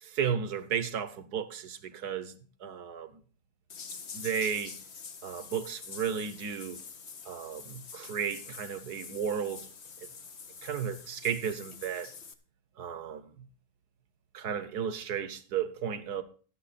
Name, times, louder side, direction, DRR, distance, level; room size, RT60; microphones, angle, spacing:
voice 1, 0.0-2.3 2.6-3.1 4.1-4.7 5.2-6.8 7.3-9.7 10.6-12.1 12.8-13.5 14.3-16.2, right 7 dB, 65° right, 1.6 m, -34 dB
sound 1, 3.7-12.3, left 5 dB, 45° left, 1.2 m, -46 dB
12.5 x 9.9 x 4.2 m
omnidirectional pair, 1.8 m